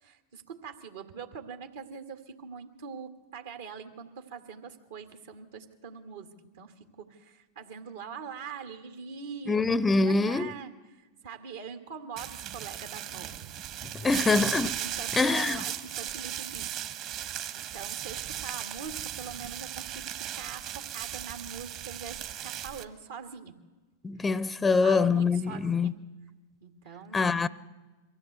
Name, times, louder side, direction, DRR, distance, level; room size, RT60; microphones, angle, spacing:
voice 1, 0.0-6.3 6.5-13.5 14.0-14.4 14.8-17.0 17.5-23.6 24.6-25.9 26.6-27.5, right 6 dB, 70° right, 1.9 m, -43 dB
voice 2, 9.5-10.5 13.8-14.8 15.1-15.6 24.0-25.9 27.1-27.5, left 4 dB, 15° left, 0.6 m, -25 dB
sound 1, 12.2-22.8, right 11 dB, 45° right, 1.5 m, -37 dB
23.0 x 15.0 x 8.0 m
hypercardioid pair, 105°, 0 cm